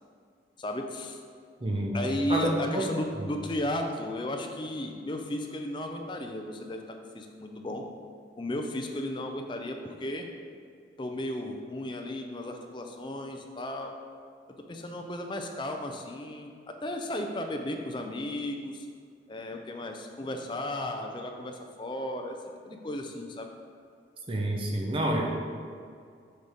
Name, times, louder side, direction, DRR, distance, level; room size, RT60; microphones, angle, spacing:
voice 1, 0.6-1.2 1.9-6.8 7.1-7.8 8.4-10.3 11.0-13.9 14.7-18.9 19.3-22.4 22.6-23.5, left 1 dB, 25° left, 3 dB, 0.5 m, -34 dB
voice 2, 1.6-2.0 2.3-2.9 24.3-25.3, right 1 dB, 30° right, 0 dB, 0.7 m, -28 dB
6.4 x 5.3 x 3.5 m, 2.2 s
head